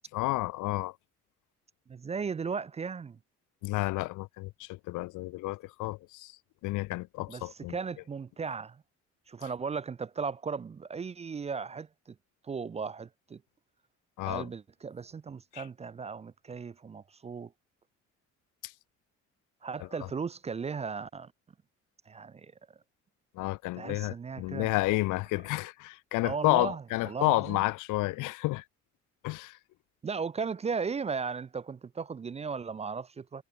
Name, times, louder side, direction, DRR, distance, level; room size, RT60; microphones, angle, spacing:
voice 1, 0.1-0.9 3.6-6.3 6.6-7.8 14.2-14.5 15.5-15.6 23.4-28.6 29.2-29.6, left 20 dB, 85° left, 0.4 m, -31 dB
voice 2, 1.9-3.2 7.3-8.8 9.3-12.2 12.4-13.4 14.3-17.5 19.6-21.3 22.1-22.5 23.7-24.7 26.2-27.6 30.0-33.4, right 5 dB, 20° right, 0.3 m, -36 dB
cardioid pair, 90°, 30 cm